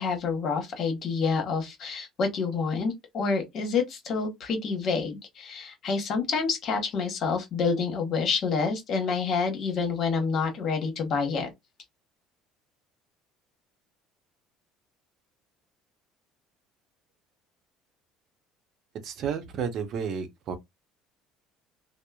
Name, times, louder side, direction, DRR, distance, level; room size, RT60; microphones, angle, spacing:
voice 1, 0.0-11.5, left 5 dB, 50° left, 1.1 m, -28 dB
voice 2, 19.0-20.6, right 7 dB, 55° right, 0.6 m, -31 dB
2.9 x 2.0 x 2.3 m
supercardioid pair, 100°, 0 cm